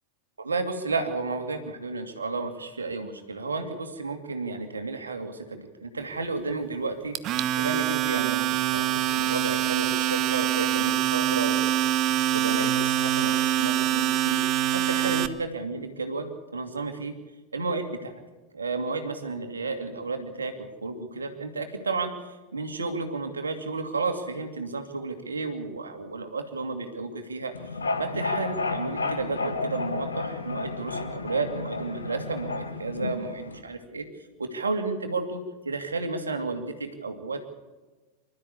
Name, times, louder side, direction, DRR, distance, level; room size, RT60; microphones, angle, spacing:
voice 1, 0.4-11.7 12.3-17.1 17.5-18.1 18.5-27.5 28.0-34.1 34.4-37.4, right 3 dB, 75° right, 6 dB, 2.5 m, -32 dB
Domestic sounds home sounds, 7.1-15.3, right 12 dB, 35° right, 1.0 m, -25 dB
sound 1, 27.5-33.6, left 3 dB, 75° left, 1.7 m, -32 dB
25.5 x 13.0 x 8.4 m, 1.2 s
figure-of-eight pair, 90°, 0 cm